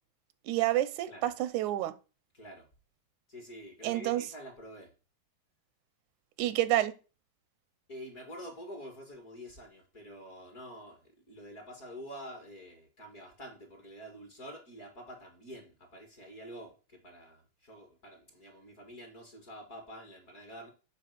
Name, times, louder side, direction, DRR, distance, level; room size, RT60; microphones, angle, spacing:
voice 1, 0.5-1.9 3.8-4.2 6.4-6.9, right 14 dB, 90° right, 2.1 m, -29 dB
voice 2, 2.3-2.7 3.3-4.9 7.9-11.0 11.3-20.7, equal, 35° left, 1.8 m, -47 dB
9.3 x 3.9 x 6.7 m
omnidirectional pair, 3.5 m